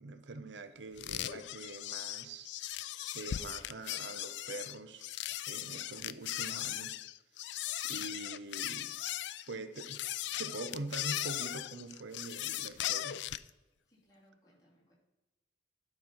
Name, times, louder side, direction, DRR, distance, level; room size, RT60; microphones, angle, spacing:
voice 1, 0.0-5.1 5.5-7.0 7.8-9.0 9.5-10.0 10.4-13.2, right 2 dB, 80° right, 10 dB, 0.7 m, -44 dB
sound 1, 1.0-13.5, left 13 dB, 75° left, 0.3 m, -38 dB
voice 2, 13.8-14.9, equal, 20° left, -6 dB, 2.8 m, -66 dB
11.0 x 4.4 x 5.8 m, 1.1 s
head